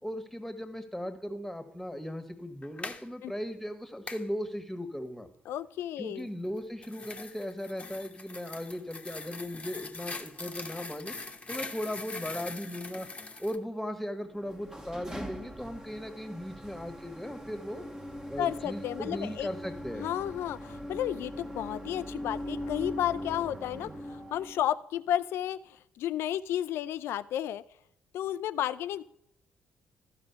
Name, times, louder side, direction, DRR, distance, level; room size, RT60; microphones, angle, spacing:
voice 1, 0.0-5.3 6.0-11.1 11.5-13.1 13.4-17.8 18.3-20.1, equal, 5° left, 7 dB, 1.6 m, -37 dB
sound 1, 2.6-3.0 4.1-4.3 6.4-13.6, left 3 dB, 25° left, 1.1 m, -42 dB
voice 2, 5.5-6.3 18.4-19.5 20.0-27.6 28.1-29.0, left 11 dB, 60° left, 14 dB, 0.4 m, -32 dB
sound 2, 14.3-24.7, equal, 10° right, 1.3 m, -41 dB
14.0 x 5.1 x 5.7 m, 0.76 s
figure-of-eight pair, 45°, 5 cm